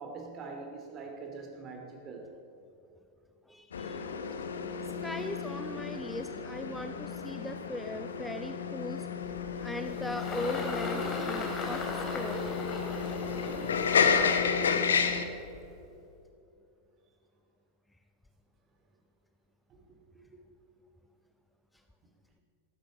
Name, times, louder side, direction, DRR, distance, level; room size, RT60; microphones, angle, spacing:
voice 1, 0.0-2.3 19.7-19.8 20.3-20.4, right 4 dB, 30° right, 3 dB, 2.7 m, -43 dB
voice 2, 3.5-4.0 4.8-9.1 9.6-12.4, left 2 dB, 5° left, 7 dB, 0.5 m, -39 dB
sound 1, 3.7-15.2, left 6 dB, 65° left, 1.0 m, -32 dB
Engine, 9.2-15.8, left 2 dB, 25° left, 2.8 m, -38 dB
15.0 x 12.0 x 6.3 m, 2.7 s
figure-of-eight pair, 90°, 0 cm